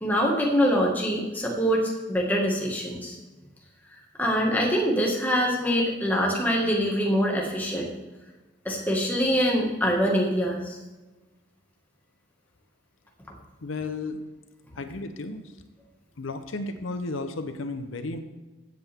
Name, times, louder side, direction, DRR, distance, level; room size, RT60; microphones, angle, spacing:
voice 1, 0.0-3.1 4.2-7.9 8.7-10.8, equal, 10° left, -2 dB, 1.8 m, -24 dB
voice 2, 13.6-14.2 14.7-15.4 16.2-18.2, left 3 dB, 90° left, 8 dB, 0.8 m, -33 dB
15.5 x 7.8 x 3.6 m, 1.2 s
head